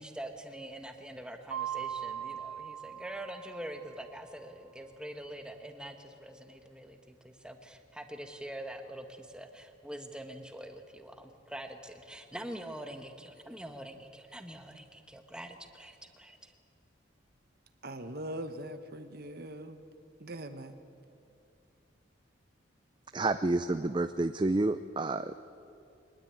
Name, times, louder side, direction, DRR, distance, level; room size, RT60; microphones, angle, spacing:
voice 1, 0.0-16.5, right 1 dB, 5° right, 5 dB, 1.5 m, -44 dB
Mallet percussion, 1.5-4.1, right 10 dB, 75° right, 1.7 m, -39 dB
voice 2, 17.8-19.8 20.2-20.7, right 1 dB, 50° right, 8 dB, 1.2 m, -41 dB
voice 3, 23.1-25.4, right 2 dB, 25° right, 10 dB, 0.5 m, -29 dB
24.0 x 19.5 x 9.0 m, 2.6 s
head